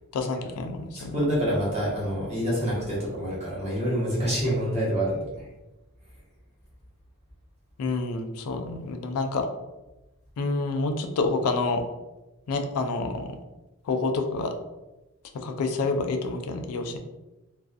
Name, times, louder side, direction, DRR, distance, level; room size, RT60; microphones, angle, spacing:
voice 1, 0.1-1.2 7.8-9.5 10.4-11.8 12.5-13.4 13.8-14.5 15.3-17.0, left 3 dB, 85° left, 6 dB, 0.3 m, -28 dB
voice 2, 0.9-5.5, equal, 30° right, -7 dB, 0.9 m, -27 dB
2.3 x 2.3 x 2.4 m, 1.0 s
head